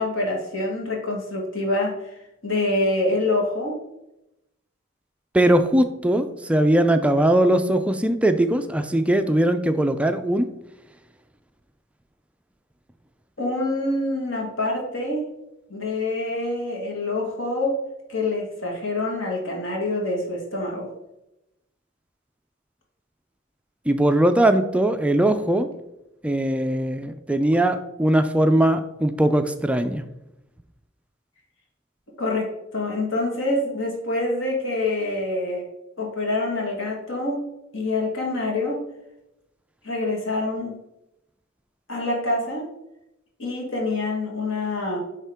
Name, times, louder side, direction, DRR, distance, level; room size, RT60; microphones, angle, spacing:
voice 1, 0.0-1.9 2.4-3.7 13.4-15.2 15.7-17.8 18.1-20.9 32.2-35.6 36.0-37.4 37.7-38.8 39.8-40.8 41.9-42.6 43.4-45.0, left 2 dB, 65° left, -1 dB, 1.6 m, -26 dB
voice 2, 5.3-10.5 23.9-25.7 26.2-30.0, right 1 dB, 5° right, 8 dB, 0.3 m, -20 dB
9.9 x 3.7 x 3.5 m, 0.89 s
head